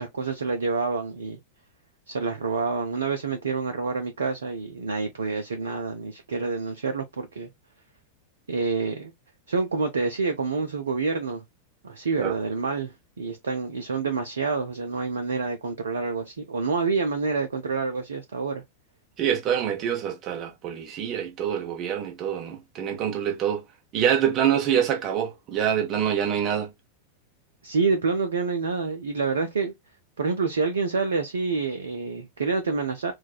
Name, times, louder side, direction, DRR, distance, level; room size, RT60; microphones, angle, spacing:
voice 1, 0.0-1.4 2.1-7.5 8.5-9.1 9.5-11.4 11.8-18.6 27.6-29.7 30.2-33.1, right 4 dB, 70° right, 0.4 m, -27 dB
voice 2, 19.2-23.6 23.9-26.7, right 9 dB, 35° right, 1.1 m, -25 dB
4.6 x 2.3 x 2.3 m
figure-of-eight pair, 90°, 0 cm